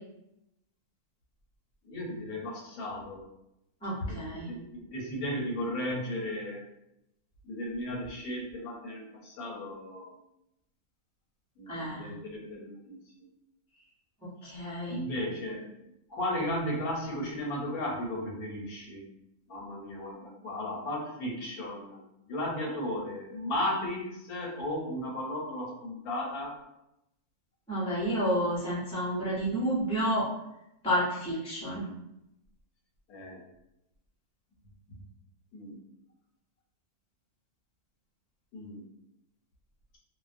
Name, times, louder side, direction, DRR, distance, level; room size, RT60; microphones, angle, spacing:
voice 1, 1.8-3.2 4.0-6.6 7.4-10.2 11.6-13.3 14.5-15.7 16.1-19.0 19.5-26.6 33.1-33.4 35.5-35.8 38.5-38.9, left 1 dB, 80° left, -1 dB, 1.2 m, -35 dB
voice 2, 3.8-4.5 11.7-12.1 14.4-15.0 27.7-30.3 30.8-31.8, equal, 10° left, -8 dB, 0.4 m, -30 dB
2.5 x 2.1 x 2.4 m, 0.85 s
omnidirectional pair, 1.6 m